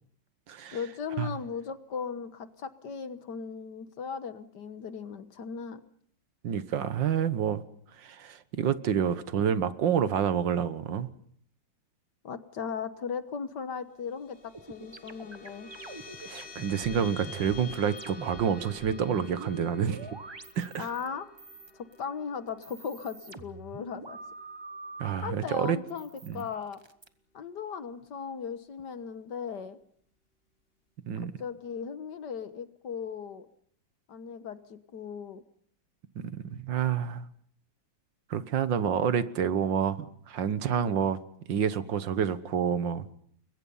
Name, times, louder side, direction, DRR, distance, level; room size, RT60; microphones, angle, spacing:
voice 1, 0.7-5.8 12.2-15.7 20.8-21.3 21.7-24.2 25.2-26.8 27.3-29.8 31.2-33.5 34.1-35.4 40.7-41.0, left 6 dB, 60° left, 1.8 m, -37 dB
voice 2, 6.4-7.6 8.0-11.1 16.3-20.2 20.6-20.9 25.0-25.8 26.2-26.4 31.1-31.3 36.3-37.3 38.3-40.0 40.3-41.2 41.5-43.1, right 8 dB, 70° right, 1.8 m, -28 dB
sound 1, 14.0-24.8, left 3 dB, 30° left, 1.9 m, -48 dB
sound 2, 14.5-18.5 18.7-21.1 21.4-22.0 22.5-25.2 25.9-27.1, right 3 dB, 20° right, 0.8 m, -45 dB
30.0 x 22.5 x 5.6 m
omnidirectional pair, 2.1 m